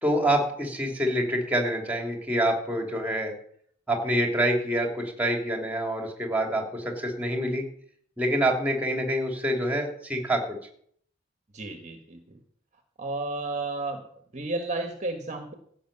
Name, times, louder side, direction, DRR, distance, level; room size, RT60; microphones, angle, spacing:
voice 1, 0.0-3.3 3.9-7.6 8.2-10.6, right 1 dB, 10° right, 3 dB, 2.9 m, -26 dB
voice 2, 11.5-12.4 13.0-14.0 14.3-15.5, right 2 dB, 35° right, 5 dB, 1.4 m, -32 dB
15.5 x 6.4 x 8.7 m, 0.63 s
head